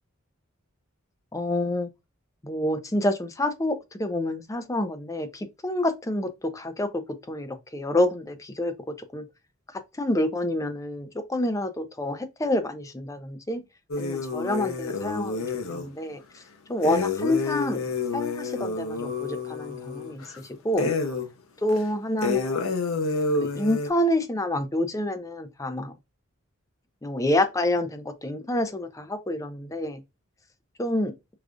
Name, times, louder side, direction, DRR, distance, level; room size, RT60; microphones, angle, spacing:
voice 1, 1.3-1.9 2.4-7.0 7.3-8.7 9.1-9.2 10.0-13.6 14.0-16.2 16.7-17.8 18.1-20.2 20.6-20.9 21.6-22.7 23.4-25.9 27.0-30.0 30.8-31.1, left 1 dB, 15° left, 0.4 m, -27 dB
sound 1, 13.9-15.9 16.8-20.4 20.8-21.3 21.7-21.8 22.2-23.9, left 3 dB, 80° left, 0.7 m, -29 dB
4.8 x 2.4 x 2.4 m
head